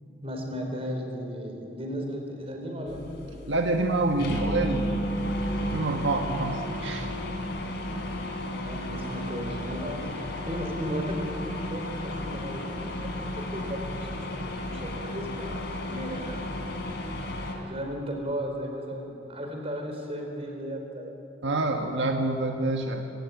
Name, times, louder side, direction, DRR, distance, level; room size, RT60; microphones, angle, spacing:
voice 1, 0.2-3.5 8.5-16.5 17.6-21.1 21.4-21.9, equal, 35° right, 2 dB, 4.5 m, -36 dB
sound 1, 2.9-17.5, left 1 dB, 65° left, 3.8 m, -33 dB
voice 2, 3.5-7.1 21.4-23.0, right 2 dB, 80° right, 3 dB, 1.6 m, -27 dB
25.0 x 18.0 x 9.7 m, 2.9 s
head